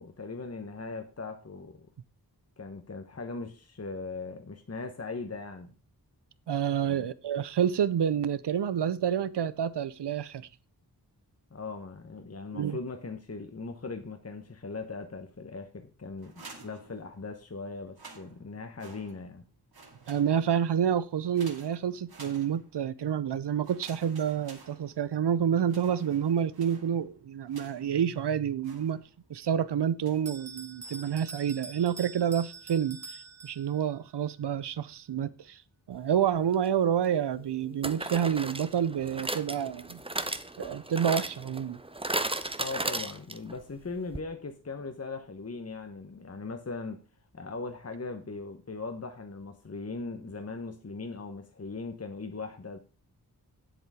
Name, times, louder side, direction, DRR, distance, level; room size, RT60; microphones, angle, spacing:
voice 1, 0.0-1.9 2.6-5.7 6.8-7.1 11.5-19.5 42.6-47.0 47.3-52.8, left 3 dB, 35° left, 1.2 m, -39 dB
voice 2, 6.5-10.5 12.5-12.8 20.1-29.0 29.3-35.6 35.9-40.0 40.6-41.8, right 8 dB, 80° right, 0.7 m, -28 dB
sound 1, 16.2-17.4 17.8-19.4 19.7-20.7 21.3-22.9 23.6-25.3 25.6-28.0 28.6-29.4 30.0-30.4 30.8-31.3, right 3 dB, 65° right, 2.2 m, -52 dB
Bell, 30.2-34.0, right 4 dB, 40° right, 0.9 m, -45 dB
sound 2, 36.5-36.7 37.8-43.6 43.8-43.9 44.1-44.2, right 2 dB, 15° right, 0.9 m, -35 dB
8.1 x 7.7 x 4.9 m
cardioid pair, 45°, 40 cm